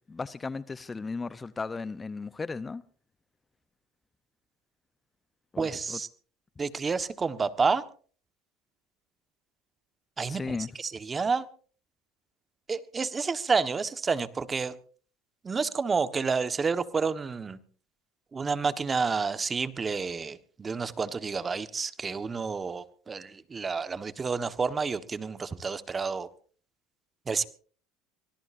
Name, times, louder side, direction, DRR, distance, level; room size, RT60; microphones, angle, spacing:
voice 1, 0.1-2.8 5.5-6.0 10.3-10.7, left 4 dB, 20° left, 0.7 m, -35 dB
voice 2, 5.6-6.1 6.6-7.8 10.2-11.5 12.7-14.8 15.4-17.6 18.3-26.3 27.3-27.4, right 5 dB, 25° right, 1.4 m, -29 dB
25.0 x 19.0 x 2.7 m
supercardioid pair, 90°, 0 cm